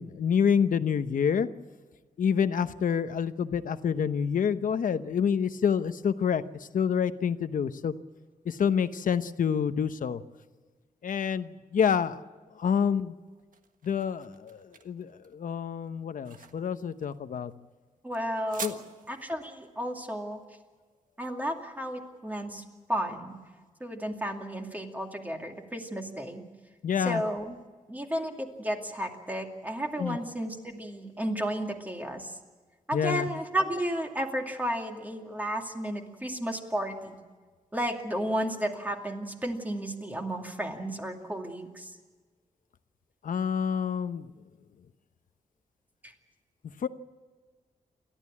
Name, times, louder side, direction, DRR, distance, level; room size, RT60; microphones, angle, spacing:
voice 1, 0.0-1.5 2.2-7.9 8.4-10.2 11.0-12.2 12.5-13.1 13.8-17.5 18.6-18.8 26.8-27.2 30.0-30.2 32.9-33.3 43.2-44.3 46.8-46.9, left 7 dB, 75° left, 11 dB, 1.0 m, -27 dB
sound 1, 13.0-22.0, right 5 dB, 80° right, 1.6 m, -47 dB
voice 2, 18.0-18.8 19.1-20.4 21.2-22.6 22.9-23.4 23.8-26.4 27.0-27.6 27.9-32.4 32.9-37.2 37.7-41.9 46.0-46.1, equal, 10° right, 2 dB, 2.4 m, -33 dB
28.5 x 13.0 x 8.6 m, 1.4 s
wide cardioid pair, 160°, 14 cm